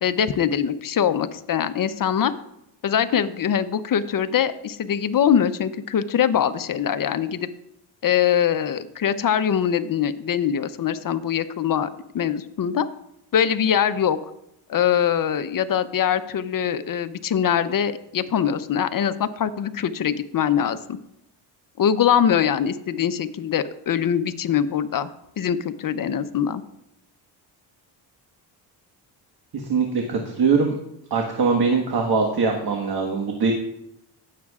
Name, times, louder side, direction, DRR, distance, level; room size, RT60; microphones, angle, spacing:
voice 1, 0.0-2.3 2.8-7.5 8.0-11.9 12.1-12.9 13.3-14.2 14.7-21.0 21.8-25.1 25.4-26.6, left 8 dB, 45° left, 12 dB, 0.8 m, -23 dB
voice 2, 29.5-30.7 31.1-33.5, right 4 dB, 50° right, 2 dB, 1.6 m, -22 dB
15.5 x 7.5 x 2.4 m, 0.82 s
supercardioid pair, 70°, 47 cm